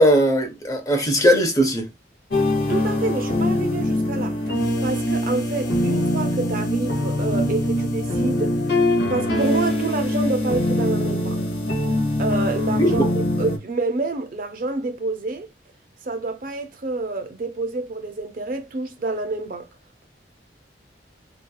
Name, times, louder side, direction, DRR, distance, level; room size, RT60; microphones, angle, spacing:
voice 1, 0.0-1.9 12.7-13.1, equal, 20° left, 0.5 m, -18 dB
sound 1, 2.3-13.6, left 1 dB, 65° left, 0.7 m, -23 dB
voice 2, 2.7-4.4 4.8-8.6 9.1-11.4 12.2-13.1 13.4-15.5 16.0-19.7, right 3 dB, 50° right, 0.5 m, -27 dB
2.8 x 2.2 x 2.2 m
head